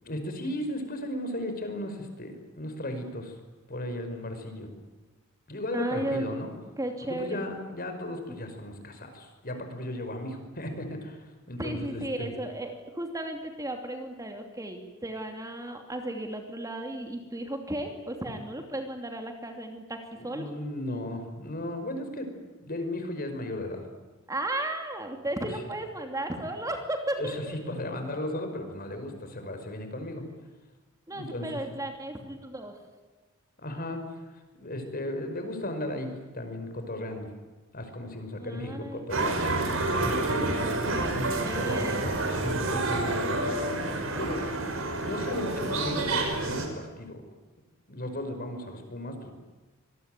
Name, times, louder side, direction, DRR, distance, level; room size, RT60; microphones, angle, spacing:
voice 1, 0.0-3.4 3.7-4.7 5.5-6.5 7.0-11.2 11.5-12.3 20.2-22.3 22.6-23.8 27.2-30.2 31.1-31.5 33.6-34.0 34.3-37.3 37.7-39.6 40.0-40.6 41.0-41.3 42.4-44.4 45.0-47.2 47.9-49.4, left 1 dB, 45° left, 7 dB, 5.4 m, -36 dB
voice 2, 5.7-6.4 6.8-7.5 11.6-20.5 24.3-27.7 31.1-32.8 38.4-39.1 40.8-42.0, right 1 dB, 15° right, 4 dB, 2.8 m, -35 dB
sound 1, 39.1-46.7, right 2 dB, 75° right, 5.4 m, -28 dB
26.0 x 22.0 x 9.3 m, 1.2 s
head